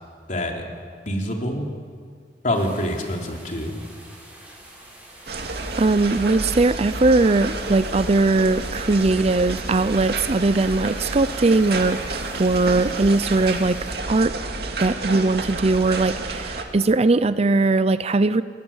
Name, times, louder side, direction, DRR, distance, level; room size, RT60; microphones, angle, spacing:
voice 1, 0.3-0.6 1.1-1.7 2.4-3.8, left 1 dB, 45° left, 1 dB, 3.6 m, -26 dB
sound 1, 2.5-14.0, right 1 dB, 10° right, 7.1 m, -46 dB
voice 2, 5.3-14.4 14.8-18.4, right 3 dB, 35° right, 14 dB, 0.6 m, -20 dB
sound 2, 5.3-16.6, right 2 dB, 65° right, 2.4 m, -30 dB
28.5 x 21.0 x 7.3 m, 2.1 s
head